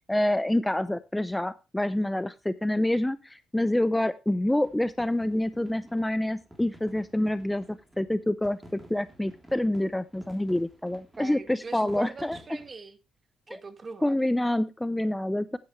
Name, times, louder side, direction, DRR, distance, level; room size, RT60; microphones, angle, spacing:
voice 1, 0.1-12.4 13.5-13.6 14.0-15.6, left 1 dB, 10° left, 0.5 m, -27 dB
sound 1, 4.6-12.7, equal, 10° right, 3.2 m, -53 dB
voice 2, 11.2-13.0 13.5-14.1, right 4 dB, 35° right, 1.3 m, -41 dB
11.0 x 9.6 x 3.1 m
cardioid pair, 90°, 0 cm